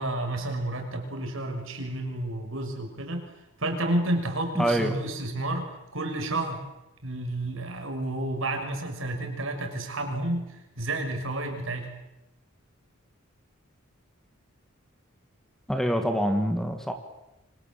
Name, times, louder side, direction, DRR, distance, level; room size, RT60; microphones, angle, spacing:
voice 1, 0.0-3.3 3.6-5.7 5.9-6.6 7.0-10.5 10.8-11.9, right 1 dB, 65° right, 5 dB, 6.3 m, -30 dB
voice 2, 4.6-4.9 15.7-16.9, equal, ahead, 6 dB, 2.4 m, -25 dB
29.0 x 25.5 x 7.8 m, 0.93 s
head